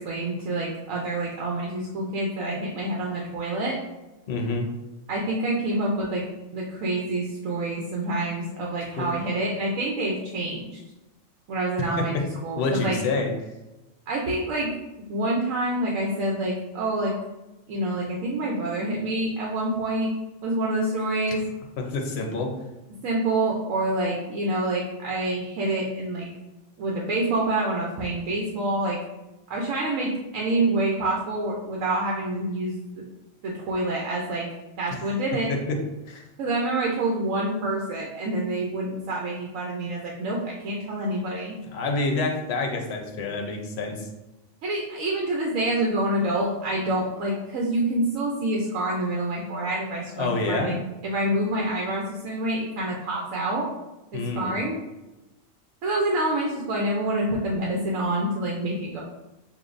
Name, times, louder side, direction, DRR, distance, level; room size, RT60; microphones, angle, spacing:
voice 1, 0.0-3.7 5.1-6.3 6.5-10.8 11.5-12.1 12.4-13.0 14.1-14.7 15.1-17.1 17.7-20.1 20.4-21.4 23.0-26.3 26.8-29.0 29.5-33.0 33.4-34.5 34.8-35.5 36.4-41.6 44.6-50.7 51.0-53.7 54.1-54.7 55.8-59.0, right 1 dB, 90° right, -2 dB, 1.1 m, -27 dB
voice 2, 4.3-4.7 9.0-9.1 11.8-12.2 12.6-13.3 21.8-22.6 34.9-35.0 35.5-36.3 41.7-44.1 50.2-50.8 54.1-54.6, left 3 dB, 60° left, 2 dB, 0.9 m, -28 dB
6.7 x 2.6 x 2.5 m, 1.0 s
omnidirectional pair, 1.3 m